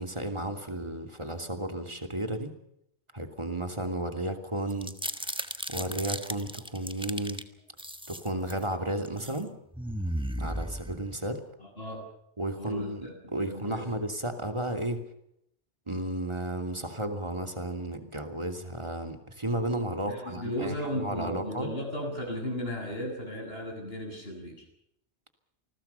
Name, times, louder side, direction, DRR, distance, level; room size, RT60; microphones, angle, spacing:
voice 1, 0.0-2.5 3.1-7.4 8.1-9.5 10.4-11.4 12.4-15.0 15.9-21.7, right 1 dB, 25° right, 6 dB, 2.9 m, -33 dB
sound 1, 4.7-7.4 7.8-8.6 9.1-9.4 9.7-11.4, equal, 5° right, 1.4 m, -35 dB
voice 2, 11.6-12.1 12.5-13.1 13.5-13.9 20.1-24.6, equal, 60° left, 2 dB, 7.8 m, -35 dB
28.5 x 21.0 x 5.7 m, 0.76 s
omnidirectional pair, 1.2 m